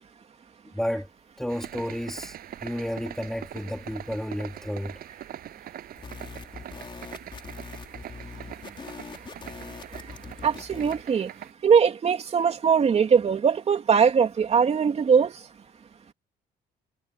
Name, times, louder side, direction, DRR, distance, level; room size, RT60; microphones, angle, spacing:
voice 1, 0.6-1.1 1.4-2.3 2.6-5.0, equal, ahead, 3.2 m, -31 dB
sound 1, 1.5-11.5, right 11 dB, 65° right, 7.8 m, -43 dB
sound 2, 6.0-11.0, left 5 dB, 30° left, 4.4 m, -42 dB
voice 2, 10.4-11.3 11.6-15.3, right 6 dB, 40° right, 2.9 m, -21 dB
cardioid pair, 110°, 17 cm